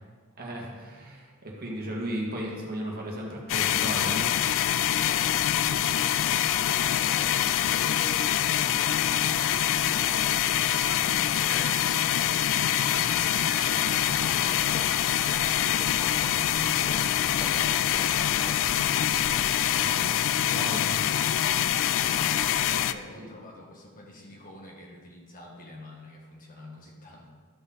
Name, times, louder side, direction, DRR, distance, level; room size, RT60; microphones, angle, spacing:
voice 1, 0.4-4.3 19.8-20.1 20.5-21.0 23.2-23.3, right 1 dB, 45° right, -2 dB, 1.8 m, -35 dB
sound 1, 3.5-22.9, left 11 dB, 60° left, 0.3 m, -25 dB
voice 2, 6.7-10.2 10.7-12.1 12.7-17.0 19.7-20.8 21.7-27.3, left 1 dB, 40° left, -1 dB, 1.8 m, -47 dB
sound 2, 8.6-14.9, right 3 dB, 65° right, 1.4 m, -45 dB
sound 3, 13.3-19.9, left 1 dB, 25° left, 0.9 m, -43 dB
13.0 x 5.2 x 4.2 m, 1.5 s
head